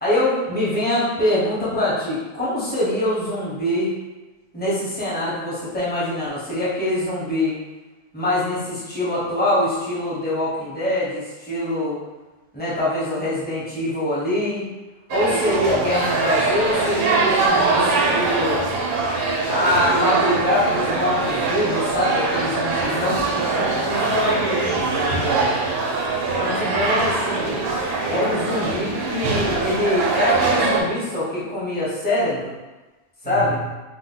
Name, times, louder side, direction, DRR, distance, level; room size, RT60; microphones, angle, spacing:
voice 1, 0.0-3.9 4.5-7.6 8.1-12.0 12.5-14.6 15.1-18.6 19.5-24.1 26.3-27.6 28.1-32.5 33.3-33.6, left 1 dB, 15° left, -9 dB, 0.4 m, -24 dB
sound 1, 15.1-30.8, right 3 dB, 90° right, 1.2 m, -22 dB
voice 2, 23.9-25.6 33.2-33.6, right 2 dB, 65° right, -5 dB, 0.9 m, -28 dB
2.9 x 2.1 x 3.7 m, 1.1 s
omnidirectional pair, 1.7 m